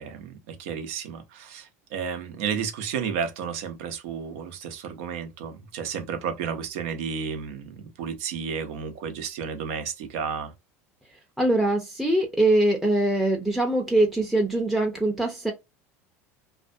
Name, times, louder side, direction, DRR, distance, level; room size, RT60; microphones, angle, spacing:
voice 1, 0.0-10.5, right 6 dB, 70° right, 0.7 m, -32 dB
voice 2, 11.4-15.5, right 1 dB, ahead, 0.6 m, -22 dB
2.5 x 2.2 x 2.5 m
hypercardioid pair, 100°, 8 cm